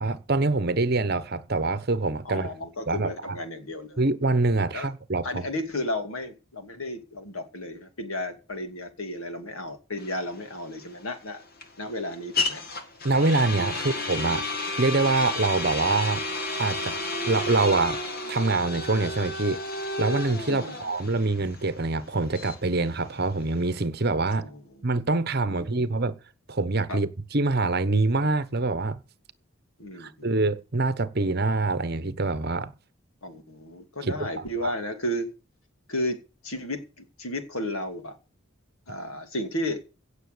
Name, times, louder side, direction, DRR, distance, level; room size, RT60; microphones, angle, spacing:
voice 1, 0.0-2.5 2.9-3.4 4.0-5.5 13.0-14.4 14.8-16.2 16.6-18.0 18.3-19.6 20.0-24.4 24.8-26.2 26.5-29.0 30.0-32.7 34.0-34.3 34.6-34.7, right 3 dB, 45° right, 1.0 m, -25 dB
voice 2, 2.2-4.0 4.7-4.9 5.2-11.4 11.8-12.6 20.5-20.8 24.3-24.8 25.5-25.9 26.9-27.0 29.8-30.3 33.2-35.3 35.9-36.2 36.4-38.1 38.9-39.8, left 1 dB, 75° left, 2.6 m, -33 dB
sound 1, 10.0-23.8, left 2 dB, 45° left, 1.9 m, -32 dB
16.5 x 6.9 x 6.8 m
head